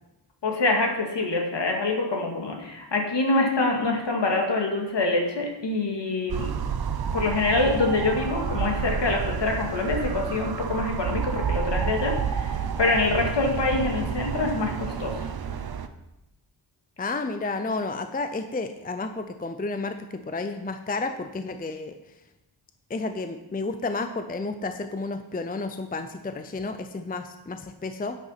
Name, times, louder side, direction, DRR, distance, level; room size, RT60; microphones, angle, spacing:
voice 1, 0.4-6.5 7.1-15.1, left 2 dB, 60° left, 1 dB, 2.4 m, -25 dB
sound 1, 6.3-15.9, right 7 dB, 50° right, 0.8 m, -30 dB
voice 2, 17.0-21.9 22.9-28.2, left 3 dB, 20° left, 8 dB, 0.6 m, -31 dB
9.4 x 8.3 x 5.8 m, 0.93 s
wide cardioid pair, 120°, 48 cm